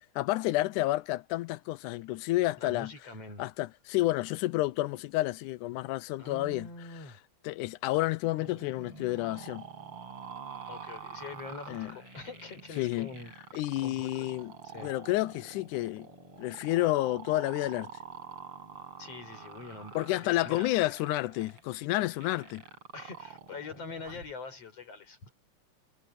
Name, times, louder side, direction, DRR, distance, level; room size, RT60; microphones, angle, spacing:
voice 1, 0.2-2.9 3.4-6.7 7.4-9.6 11.7-12.0 12.8-13.1 13.5-14.5 14.8-16.1 16.4-17.9 20.0-22.6, left 17 dB, 85° left, 2.1 m, -30 dB
voice 2, 2.6-3.4 6.2-7.2 10.7-13.3 13.8-14.3 14.6-14.9 19.0-20.7 22.9-25.3, left 4 dB, 50° left, 5.6 m, -44 dB
sound 1, 8.4-24.3, right 6 dB, 45° right, 8.5 m, -47 dB
omnidirectional pair, 3.5 m